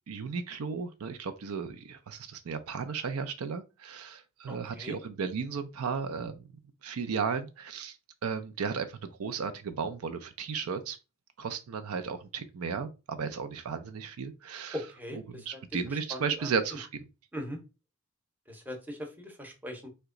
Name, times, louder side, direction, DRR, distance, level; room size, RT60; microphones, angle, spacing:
voice 1, 0.1-6.5 6.8-8.0 8.2-11.0 11.4-14.9 15.1-17.1, right 5 dB, 85° right, 0.5 m, -35 dB
voice 2, 4.5-5.0 14.7-15.2 16.1-16.5 17.3-17.6 18.5-19.9, equal, 10° right, 0.7 m, -39 dB
2.9 x 2.2 x 3.6 m
head